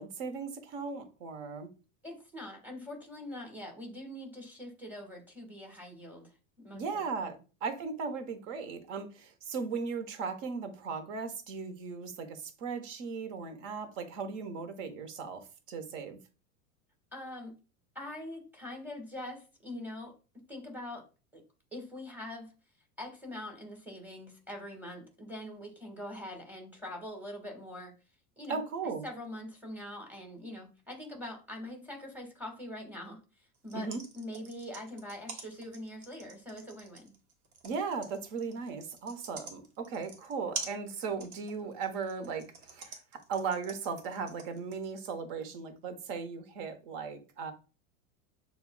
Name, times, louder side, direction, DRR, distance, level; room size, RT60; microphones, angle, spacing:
voice 1, 0.0-1.7 6.7-16.2 28.5-29.1 33.7-34.0 37.6-43.0 43.3-47.5, right 5 dB, 55° right, 1.0 m, -37 dB
voice 2, 2.0-7.0 17.1-17.5 17.9-20.1 20.5-21.0 21.3-21.4 21.7-22.5 23.0-27.9 28.4-28.6 29.0-33.9 34.1-37.2, left 1 dB, 5° right, 1.4 m, -43 dB
sound 1, 33.5-44.9, right 4 dB, 90° right, 1.1 m, -45 dB
6.7 x 2.3 x 2.2 m
hypercardioid pair, 95°, 43 cm